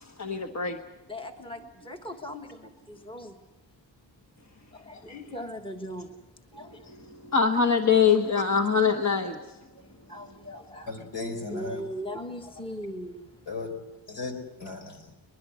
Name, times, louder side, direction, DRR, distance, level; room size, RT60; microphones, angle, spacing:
voice 1, 0.0-0.8 5.1-5.2 6.8-9.6, left 6 dB, 35° left, 5 dB, 1.2 m, -24 dB
voice 2, 1.1-3.4 4.7-6.2 6.5-6.8 9.8-10.9 11.5-13.3, equal, 10° left, 4 dB, 1.4 m, -39 dB
voice 3, 10.9-11.8 13.5-13.7 14.1-15.1, left 3 dB, 65° left, 5 dB, 4.2 m, -36 dB
23.0 x 21.0 x 8.0 m, 1.1 s
wide cardioid pair, 160°, 46 cm